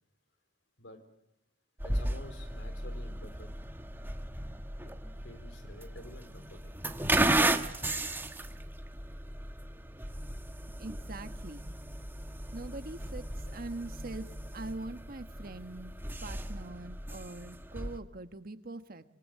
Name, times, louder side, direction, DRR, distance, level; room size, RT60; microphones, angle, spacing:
voice 1, 1.8-3.5 4.8-5.0 5.2-6.8, left 1 dB, 75° left, 8 dB, 4.3 m, -50 dB
sound 1, 1.8-18.0, right 1 dB, 10° right, 1.3 m, -35 dB
voice 2, 10.8-11.7 12.5-14.3 14.5-15.9 16.2-19.0, right 2 dB, 50° right, 9 dB, 1.4 m, -43 dB
26.0 x 24.0 x 7.7 m, 0.78 s
head